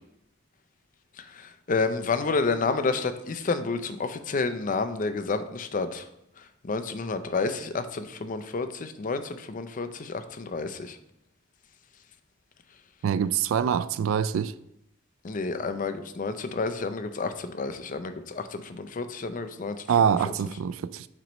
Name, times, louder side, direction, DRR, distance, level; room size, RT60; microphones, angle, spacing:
voice 1, 1.2-6.1 6.6-11.0 15.2-19.8, left 4 dB, 40° left, 0.5 m, -30 dB
voice 2, 13.0-14.5 19.9-21.1, right 8 dB, 80° right, 0.3 m, -25 dB
7.5 x 3.1 x 5.1 m
head